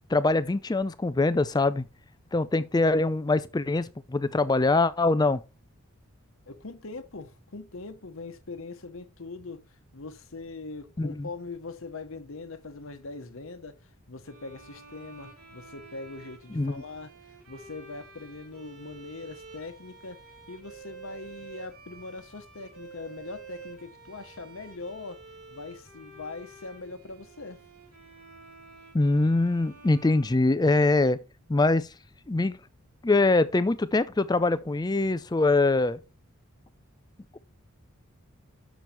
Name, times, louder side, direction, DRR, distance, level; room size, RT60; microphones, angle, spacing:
voice 1, 0.1-1.8 2.3-5.4 11.0-11.3 16.5-16.7 28.9-31.2 31.5-31.9 32.3-32.6 33.0-36.0, left 2 dB, 20° left, 0.4 m, -23 dB
voice 2, 6.5-9.6 9.9-17.1 17.5-20.2 20.5-25.2 25.5-27.6, left 3 dB, 60° left, 1.0 m, -41 dB
sound 1, 14.2-31.1, right 4 dB, 85° right, 2.7 m, -50 dB
7.2 x 6.2 x 4.3 m
head